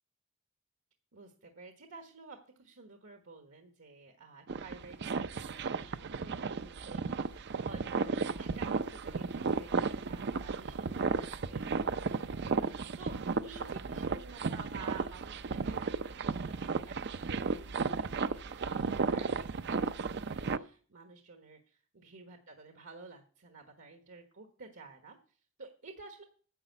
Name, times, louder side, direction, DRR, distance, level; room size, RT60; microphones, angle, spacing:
voice 1, 1.1-12.6 13.0-15.9 16.2-16.3 16.6-26.2, right 4 dB, 70° right, 5 dB, 1.3 m, -52 dB
sound 1, 4.5-20.6, right 4 dB, 55° right, 0.5 m, -34 dB
10.0 x 6.4 x 8.1 m, 0.42 s
head